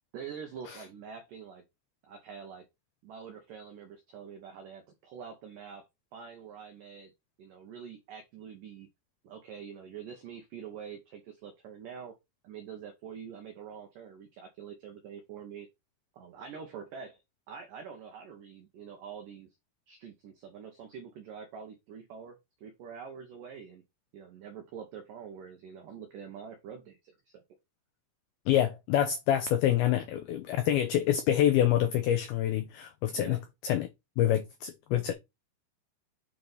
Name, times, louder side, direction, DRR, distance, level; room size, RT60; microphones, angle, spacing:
voice 1, 0.1-1.6 2.0-2.7 3.0-5.9 6.1-7.1 7.4-8.9 9.2-12.1 12.4-15.7 16.1-17.2 17.5-19.6 19.9-23.8 24.1-27.4 33.1-33.4, right 7 dB, 90° right, 1.9 m, -45 dB
voice 2, 28.5-33.9 34.2-35.1, left 11 dB, 85° left, 2.1 m, -27 dB
8.4 x 3.4 x 3.9 m
omnidirectional pair, 5.2 m